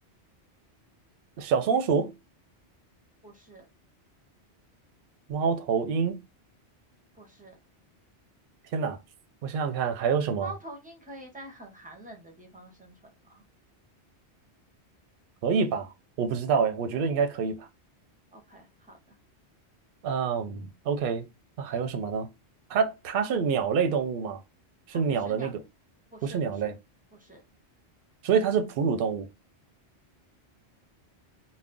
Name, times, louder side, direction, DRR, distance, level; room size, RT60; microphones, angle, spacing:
voice 1, 1.4-2.1 5.3-6.2 8.7-9.0 9.4-10.5 15.4-15.9 16.2-17.7 20.0-21.2 21.6-22.3 22.7-24.4 24.9-25.5 26.2-26.7 28.2-29.3, right 6 dB, 60° right, 0.7 m, -26 dB
voice 2, 3.2-3.7 7.1-7.6 10.4-13.4 18.3-19.2 24.9-25.5 26.1-26.8 27.1-27.4, right 1 dB, 10° right, 0.6 m, -46 dB
2.3 x 2.1 x 3.6 m
omnidirectional pair, 1.1 m